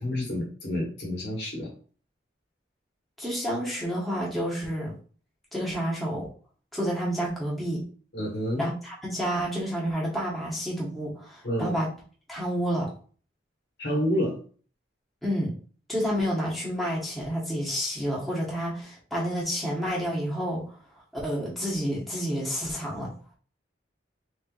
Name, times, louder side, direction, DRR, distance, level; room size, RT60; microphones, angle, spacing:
voice 1, 0.0-1.7 8.1-8.6 11.4-11.8 13.8-14.3, equal, 65° left, -4 dB, 1.7 m, -29 dB
voice 2, 3.2-5.0 5.5-6.3 6.7-7.8 8.6-11.9 12.3-12.9 15.2-15.5 15.9-20.6 21.1-23.1, equal, ahead, -6 dB, 1.1 m, -29 dB
4.4 x 3.4 x 2.4 m, 0.41 s
head